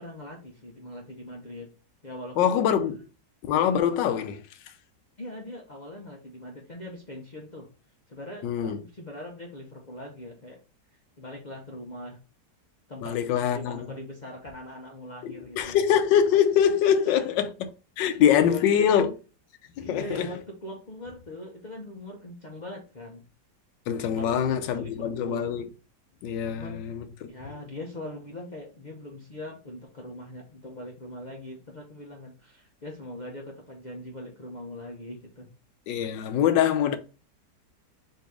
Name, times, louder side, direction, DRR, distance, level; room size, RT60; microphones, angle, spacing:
voice 1, 0.0-1.7 2.0-2.6 5.2-7.7 8.1-10.6 11.2-12.2 12.9-15.8 18.2-18.9 19.8-23.2 24.1-25.5 26.4-26.8 27.3-35.5, left 1 dB, 75° left, 0.4 m, -41 dB
voice 2, 2.4-3.0 3.4-4.4 8.4-8.8 13.0-13.9 15.2-17.7 18.0-19.1 19.8-20.3 23.9-25.6 26.2-27.1 35.9-37.0, left 9 dB, 90° left, 1.3 m, -24 dB
4.0 x 2.8 x 4.6 m
omnidirectional pair, 1.9 m